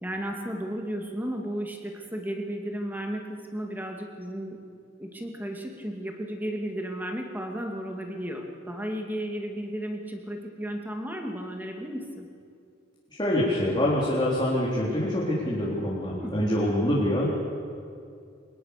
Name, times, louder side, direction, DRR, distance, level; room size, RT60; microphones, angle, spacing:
voice 1, 0.0-4.6 5.0-12.3 16.1-16.4, equal, 10° right, 2 dB, 2.4 m, -34 dB
voice 2, 13.1-17.3, left 1 dB, 25° left, -6 dB, 3.9 m, -25 dB
24.5 x 21.0 x 6.8 m, 2.4 s
head